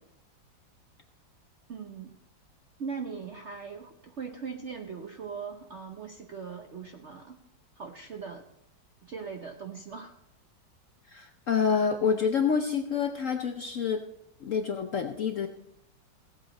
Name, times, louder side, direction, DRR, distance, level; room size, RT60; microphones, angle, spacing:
voice 1, 1.7-2.2 2.8-7.4 7.8-8.5 9.0-10.2, right 5 dB, 60° right, 4 dB, 0.7 m, -40 dB
voice 2, 11.1-14.0 14.4-15.5, left 6 dB, 65° left, 5 dB, 0.8 m, -27 dB
17.0 x 8.3 x 4.0 m, 0.79 s
omnidirectional pair, 2.1 m